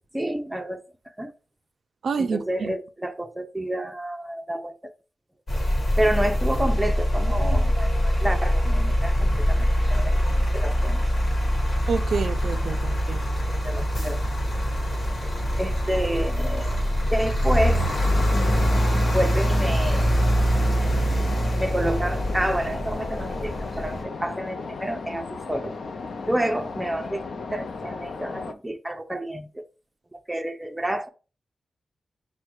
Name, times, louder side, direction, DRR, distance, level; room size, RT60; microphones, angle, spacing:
voice 1, 0.1-0.8 1.2-1.3 2.2-4.7 6.0-11.0 13.6-14.2 15.6-16.8 17.1-17.8 19.1-20.2 21.6-25.8 26.3-27.2 27.5-29.6 30.1-31.1, right 1 dB, 10° right, 0.5 m, -29 dB
voice 2, 2.0-2.7 11.9-13.2, right 5 dB, 70° right, 0.4 m, -28 dB
sound 1, 5.5-24.0, equal, 45° left, 1.4 m, -23 dB
sound 2, 17.6-28.5, left 4 dB, 65° left, 0.5 m, -35 dB
4.4 x 2.1 x 4.6 m
wide cardioid pair, 105°, 0 cm